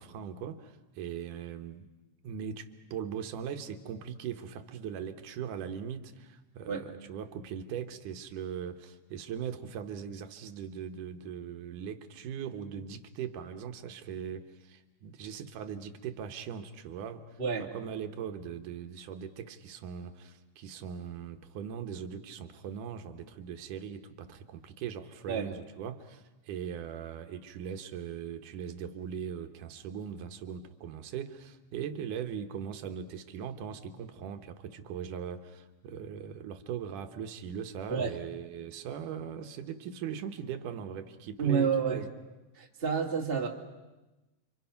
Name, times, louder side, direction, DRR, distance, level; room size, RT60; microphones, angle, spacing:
voice 1, 0.0-1.9 2.2-42.1, right 8 dB, 85° right, 7 dB, 2.7 m, -40 dB
voice 2, 17.4-17.7 25.3-25.5 37.9-38.2 41.4-42.0 42.5-43.5, right 6 dB, 20° right, 0 dB, 2.2 m, -29 dB
30.0 x 25.5 x 5.8 m, 1.1 s
omnidirectional pair, 3.6 m